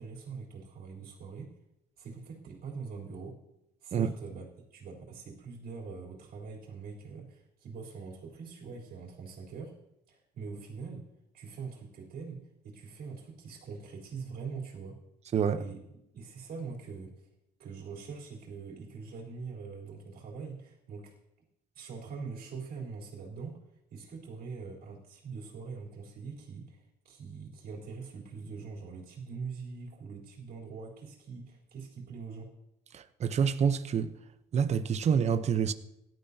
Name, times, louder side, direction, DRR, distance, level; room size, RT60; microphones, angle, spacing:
voice 1, 0.0-1.5 2.0-3.4 3.8-9.7 10.1-11.1 11.3-15.0 15.5-17.3 17.6-21.1 21.7-23.6 23.9-32.5, right 5 dB, 60° right, 3.7 m, -43 dB
voice 2, 15.3-15.6 32.9-34.1 34.5-35.7, right 7 dB, 40° right, 0.8 m, -27 dB
17.5 x 12.0 x 2.8 m
cardioid pair, 110°, 17 cm